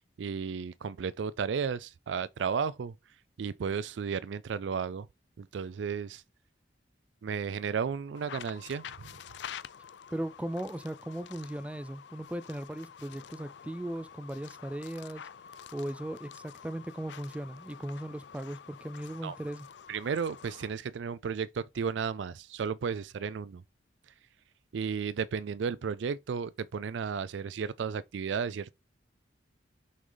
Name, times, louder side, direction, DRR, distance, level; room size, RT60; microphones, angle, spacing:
voice 1, 0.2-2.9 3.4-5.1 5.4-6.2 7.2-9.1 19.2-19.4 19.9-23.6 24.7-28.7, right 6 dB, 85° right, 0.4 m, -33 dB
sound 1, 8.1-20.8, left 8 dB, 75° left, 0.4 m, -48 dB
voice 2, 10.1-15.2 15.7-19.7, right 1 dB, 5° right, 0.4 m, -38 dB
6.1 x 5.3 x 3.9 m
head